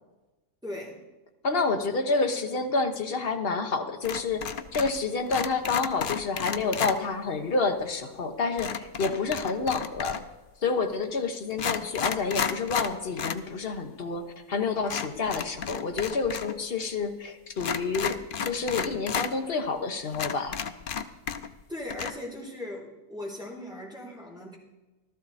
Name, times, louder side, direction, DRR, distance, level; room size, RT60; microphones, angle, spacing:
voice 1, 0.6-1.0 21.7-24.6, left 1 dB, ahead, -4 dB, 3.4 m, -38 dB
voice 2, 1.4-10.2 10.6-20.6, left 4 dB, 40° left, 5 dB, 1.2 m, -29 dB
sound 1, 4.0-5.0 5.3-7.0 8.6-10.3 11.0-11.1 11.5-13.4 13.7-13.8 14.9-16.5 16.8-16.9 17.6-19.3 19.8-19.9 20.1-21.6 21.9-22.1, left 7 dB, 70° left, 0.5 m, -32 dB
15.0 x 13.5 x 4.2 m, 1.1 s
omnidirectional pair, 1.7 m